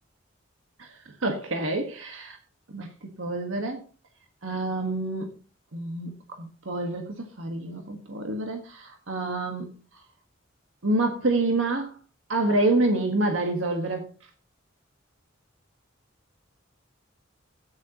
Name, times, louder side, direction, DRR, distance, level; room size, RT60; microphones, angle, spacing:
voice 1, 1.2-2.4 2.7-3.8 4.4-5.3 5.7-9.7 10.8-11.9 12.3-14.1, right 2 dB, 80° right, 1.5 m, -27 dB
14.0 x 9.6 x 2.9 m
head